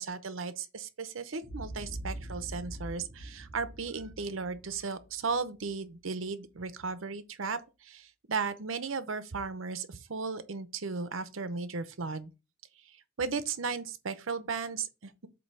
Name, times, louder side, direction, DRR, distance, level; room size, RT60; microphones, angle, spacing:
voice 1, 0.0-12.3 13.2-15.3, right 4 dB, 80° right, 0.8 m, -35 dB
Boom, 1.4-5.7, right 1 dB, 55° right, 2.5 m, -43 dB
7.8 x 2.8 x 5.5 m
head